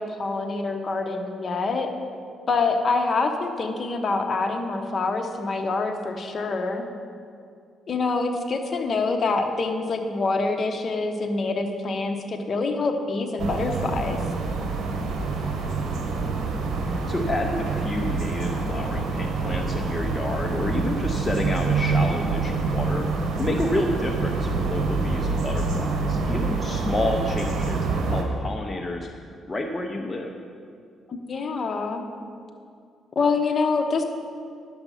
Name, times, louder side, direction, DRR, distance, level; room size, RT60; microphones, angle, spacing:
voice 1, 0.0-1.9 2.5-6.8 7.9-14.2 31.1-32.0 33.1-34.0, left 3 dB, 45° left, 5 dB, 1.1 m, -26 dB
sound 1, 13.4-28.2, right 4 dB, 70° right, 1.3 m, -26 dB
voice 2, 16.8-23.0 23.3-29.1 29.5-30.4, left 2 dB, 20° left, 2 dB, 0.7 m, -29 dB
10.5 x 7.1 x 5.7 m, 2.3 s
cardioid pair, 90°, 0 cm